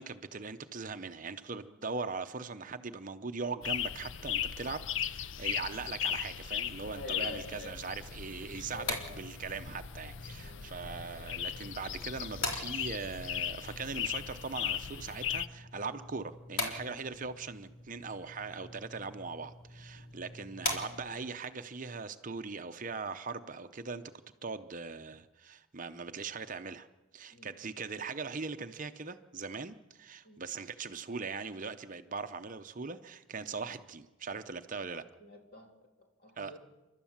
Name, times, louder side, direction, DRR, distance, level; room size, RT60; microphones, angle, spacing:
voice 1, 0.0-24.0 24.4-26.9 27.1-35.0 36.4-36.6, right 4 dB, 35° right, 9 dB, 0.7 m, -40 dB
sound 1, 3.6-15.5, left 9 dB, 60° left, 0.6 m, -38 dB
voice 2, 6.9-7.8 8.7-9.0 10.4-10.6 27.3-27.5 30.2-30.4 35.2-36.6, left 2 dB, 45° left, 2 dB, 3.1 m, -47 dB
sound 2, 8.5-21.4, left 2 dB, 80° left, 3.6 m, -43 dB
29.0 x 12.5 x 7.3 m, 1.1 s
head